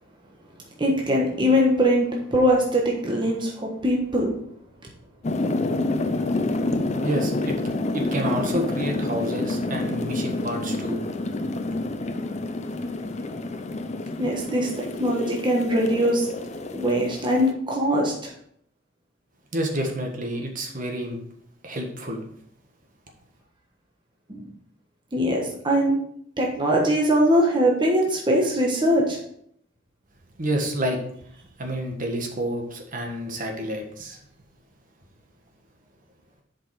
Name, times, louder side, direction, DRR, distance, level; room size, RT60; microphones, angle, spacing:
voice 1, 0.8-4.3 14.2-16.3 16.7-18.3 24.3-24.4 25.1-26.0 26.4-29.2, equal, 25° right, -2 dB, 1.2 m, -22 dB
sound 1, 5.2-17.5, left 2 dB, 35° left, 0.6 m, -28 dB
voice 2, 7.0-7.5 7.9-11.0 19.5-21.2 21.6-22.2 30.4-31.0 31.6-34.2, right 1 dB, 45° right, 2 dB, 1.5 m, -29 dB
7.5 x 5.3 x 4.7 m, 0.67 s
head